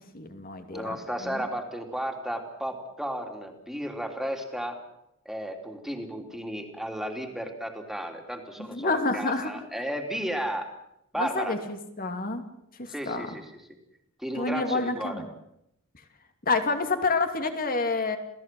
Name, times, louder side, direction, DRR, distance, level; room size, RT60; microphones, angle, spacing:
voice 1, 0.1-1.0 1.2-1.4 8.6-9.5 11.2-12.5 12.8-13.3 14.3-15.3 16.5-18.2, left 3 dB, 40° left, 7 dB, 2.7 m, -28 dB
voice 2, 0.7-4.8 5.2-10.7 11.1-11.5 12.9-13.5 14.2-15.2, equal, ahead, 3 dB, 3.2 m, -33 dB
28.5 x 17.0 x 7.8 m, 0.80 s
head